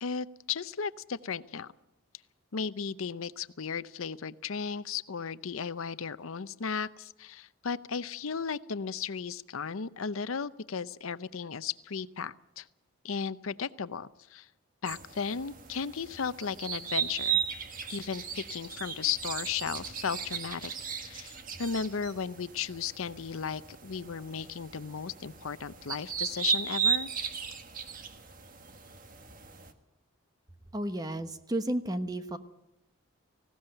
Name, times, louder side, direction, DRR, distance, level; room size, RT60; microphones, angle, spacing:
voice 1, 0.0-1.7 2.5-12.7 13.0-14.5 14.8-17.4 17.9-20.7 21.0-27.1, left 6 dB, 80° left, 15 dB, 0.7 m, -35 dB
sound 1, 14.9-29.7, right 7 dB, 40° right, 1.6 m, -36 dB
voice 2, 30.7-32.4, right 1 dB, 20° right, 10 dB, 1.0 m, -32 dB
19.0 x 17.0 x 9.0 m, 0.91 s
head